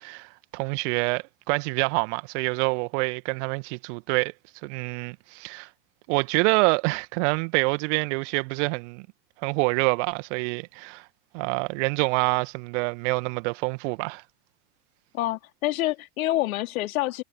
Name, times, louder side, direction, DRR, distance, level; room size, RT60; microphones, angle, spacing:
voice 1, 0.0-4.3 4.6-5.7 6.1-9.1 9.4-11.1 11.3-14.2, right 32 dB, 45° right, 1.8 m, -26 dB
voice 2, 15.1-17.2, left 15 dB, 55° left, 2.9 m, -27 dB
figure-of-eight pair, 85°, 49 cm